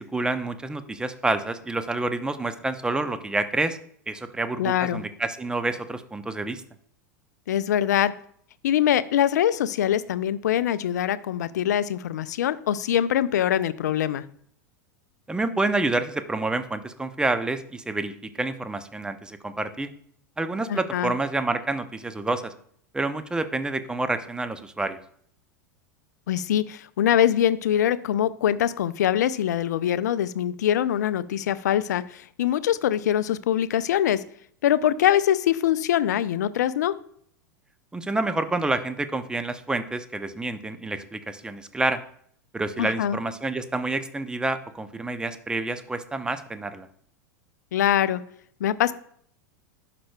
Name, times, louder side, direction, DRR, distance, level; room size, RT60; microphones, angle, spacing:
voice 1, 0.0-3.8 4.1-6.6 15.3-19.9 20.4-22.5 22.9-25.0 37.9-42.0 42.5-46.9, right 2 dB, 10° right, 10 dB, 0.7 m, -28 dB
voice 2, 4.6-5.0 7.5-8.1 8.6-14.2 20.7-21.1 26.3-34.2 34.6-36.9 42.8-43.2 47.7-48.2 48.6-48.9, left 10 dB, 70° left, 16 dB, 0.4 m, -23 dB
11.0 x 5.8 x 2.3 m, 0.63 s
hypercardioid pair, 90°, 10 cm